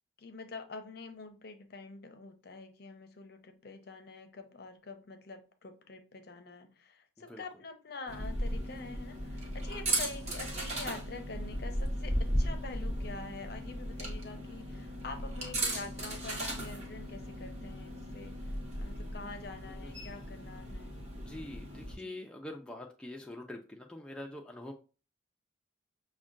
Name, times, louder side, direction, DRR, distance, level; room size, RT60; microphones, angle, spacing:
voice 1, 0.2-18.3 18.8-21.0 22.0-22.1, left 3 dB, 55° left, 0.5 m, -46 dB
sound 1, 8.1-22.0, right 1 dB, 35° right, 0.8 m, -36 dB
voice 2, 19.7-20.1 21.1-24.7, left 1 dB, 5° left, 0.3 m, -45 dB
6.0 x 2.1 x 2.5 m
head